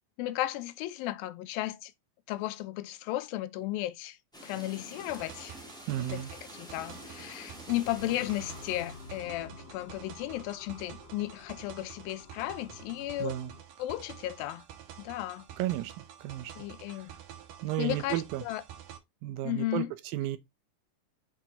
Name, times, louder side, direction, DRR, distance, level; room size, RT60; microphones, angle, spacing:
voice 1, 0.2-1.9 2.3-4.2 4.4-5.6 6.0-6.2 6.5-13.3 13.8-14.6 15.0-15.5 16.6-17.1 17.8-18.6 19.4-19.9, left 15 dB, 85° left, 2.4 m, -34 dB
sound 1, 4.3-9.3, equal, ahead, 0.9 m, -48 dB
sound 2, 4.9-19.0, right 10 dB, 70° right, 2.7 m, -49 dB
voice 2, 5.9-6.3 13.2-13.5 15.6-16.5 16.9-17.0 17.6-18.4 19.2-20.4, right 14 dB, 90° right, 2.6 m, -33 dB
sound 3, 7.8-13.6, left 4 dB, 65° left, 1.5 m, -50 dB
6.1 x 4.6 x 3.9 m
omnidirectional pair, 4.1 m